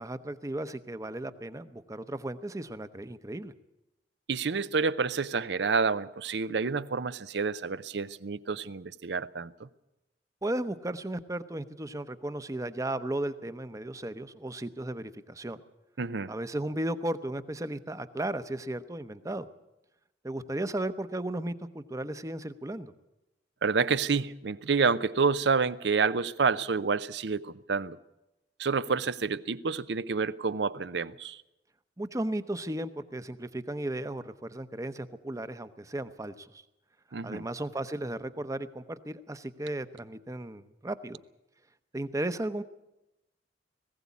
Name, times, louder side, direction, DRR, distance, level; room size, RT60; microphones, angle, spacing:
voice 1, 0.0-3.5 10.4-15.6 16.3-19.5 20.2-22.9 32.0-36.6 37.2-41.2 41.9-42.6, right 1 dB, 20° right, 0.8 m, -35 dB
voice 2, 4.3-9.7 16.0-16.3 23.6-28.0 28.6-31.4 37.1-37.5, right 5 dB, 75° right, 0.6 m, -28 dB
19.5 x 16.0 x 8.4 m
head